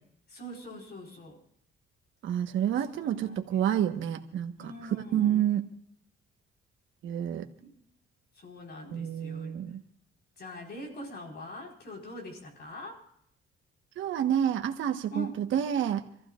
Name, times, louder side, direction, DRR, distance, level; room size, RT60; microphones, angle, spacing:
voice 1, 0.3-1.4 2.8-3.6 4.6-5.5 7.6-7.7 8.4-9.6 10.4-13.0 15.1-15.4, equal, 55° left, 1 dB, 4.6 m, -43 dB
voice 2, 2.2-4.5 5.1-5.6 7.0-7.5 8.9-9.8 14.0-16.0, right 10 dB, 75° right, 5 dB, 1.3 m, -28 dB
28.0 x 14.5 x 2.5 m, 0.69 s
cardioid pair, 90°, 20 cm